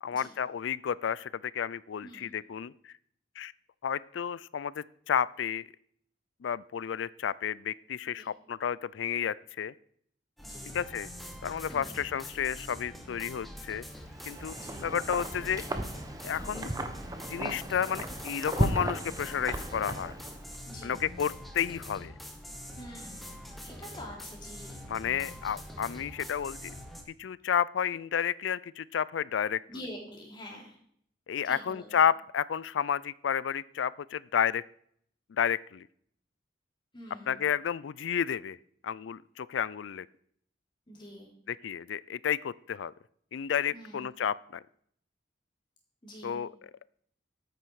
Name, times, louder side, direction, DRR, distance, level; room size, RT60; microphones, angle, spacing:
voice 1, 0.0-2.9 3.4-3.5 3.8-5.7 6.4-9.7 10.7-11.1 11.4-13.8 14.3-14.5 14.8-15.7 16.2-16.7 17.3-20.1 20.8-22.1 24.9-26.7 27.2-29.6 31.3-34.6 35.3-35.9 37.3-38.6 38.8-40.1 41.5-42.9 43.3-44.6 46.2-46.7, left 8 dB, 90° left, 21 dB, 0.4 m, -31 dB
voice 2, 2.0-2.4 8.2-8.3 10.4-10.7 11.7-12.0 14.6-14.9 20.7-20.9 22.8-24.9 29.7-30.8 31.4-31.9 36.9-37.4 40.9-41.3 43.7-44.1 46.0-46.4, equal, 25° left, -2 dB, 3.6 m, -46 dB
sound 1, 10.4-27.0, equal, ahead, 1.6 m, -44 dB
Wind, 14.0-20.5, right 1 dB, 20° right, 1.1 m, -35 dB
13.0 x 9.0 x 4.8 m, 0.65 s
head